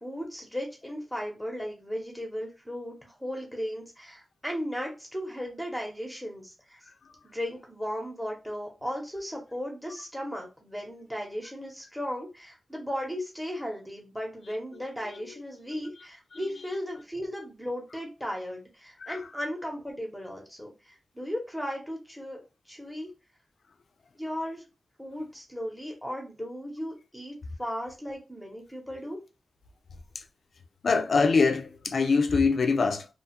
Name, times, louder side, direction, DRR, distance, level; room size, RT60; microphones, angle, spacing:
voice 1, 0.0-6.8 7.2-22.4 22.7-23.1 24.1-24.6 25.0-29.2, equal, ahead, 0.8 m, -36 dB
voice 2, 15.0-15.3 19.0-19.2 30.2-30.3 30.8-33.1, left 4 dB, 65° left, 0.4 m, -24 dB
2.5 x 2.3 x 2.8 m
wide cardioid pair, 95°, 0 cm